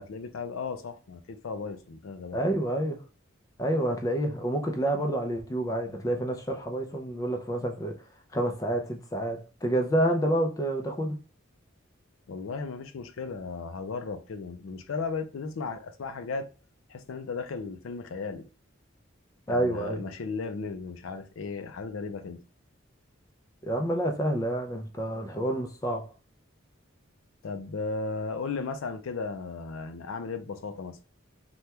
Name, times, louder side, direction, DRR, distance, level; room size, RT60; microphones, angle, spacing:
voice 1, 0.0-2.4 12.3-16.5 16.9-18.4 19.5-22.4 27.4-31.0, left 4 dB, 85° left, 0.4 m, -35 dB
voice 2, 2.3-3.0 3.6-8.0 8.3-11.2 19.5-20.0 23.6-26.1, right 1 dB, 15° left, 0.4 m, -28 dB
3.3 x 2.2 x 2.8 m
head